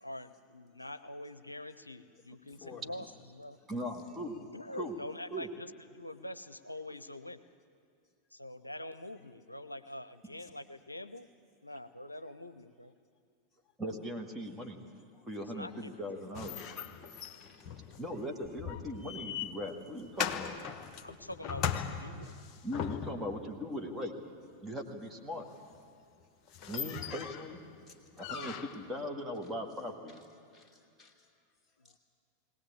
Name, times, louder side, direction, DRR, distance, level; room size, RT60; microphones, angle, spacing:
voice 1, 0.0-3.6 4.5-7.4 8.3-11.3 11.6-12.9 15.5-16.0 16.3-16.4 21.0-22.4 31.8-31.9, left 1 dB, 85° left, 11 dB, 0.6 m, -45 dB
voice 2, 3.7-4.4 4.8-5.0 5.3-5.5 13.8-14.8 15.2-16.6 18.0-20.6 22.6-24.2 24.6-25.5 26.7-27.6 28.2-30.2, equal, 10° right, 2 dB, 2.0 m, -39 dB
sound 1, 16.3-23.4 25.8-25.9 26.2-26.3 26.5-27.5 28.2-28.9, left 8 dB, 30° left, 1.3 m, -39 dB
voice 3, 17.2-17.7 27.9-28.0 30.5-31.1, left 7 dB, 10° left, 0 dB, 2.7 m, -54 dB
20.5 x 18.0 x 8.7 m, 2.2 s
figure-of-eight pair, 90°, 0 cm